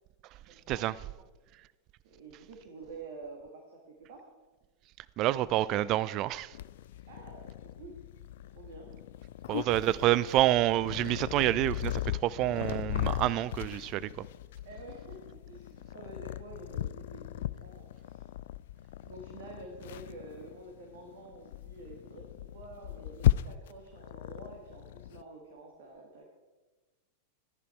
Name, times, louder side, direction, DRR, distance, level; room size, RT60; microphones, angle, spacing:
voice 1, 0.3-1.0 2.0-4.2 7.1-8.0 8.5-8.9 9.6-10.3 14.6-18.3 19.0-26.3, right 3 dB, 55° right, 2.2 m, -49 dB
voice 2, 5.2-6.6 9.5-14.2, right 14 dB, 40° right, 0.4 m, -28 dB
Purr, 6.5-25.2, left 13 dB, 55° left, 0.3 m, -37 dB
14.5 x 11.0 x 4.6 m
figure-of-eight pair, 90°, 0 cm